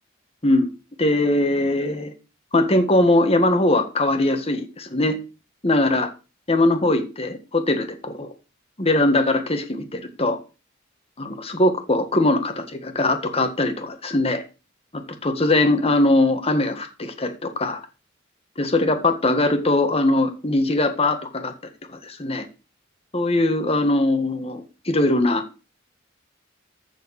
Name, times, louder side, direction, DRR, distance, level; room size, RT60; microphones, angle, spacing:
voice 1, 1.0-2.1 2.5-5.2 5.6-6.1 6.5-8.3 8.8-10.4 11.2-14.4 15.2-17.8 18.6-21.5 21.9-22.4 23.1-25.4, left 2 dB, 30° left, 7 dB, 1.7 m, -21 dB
14.5 x 4.9 x 6.4 m, 0.32 s
head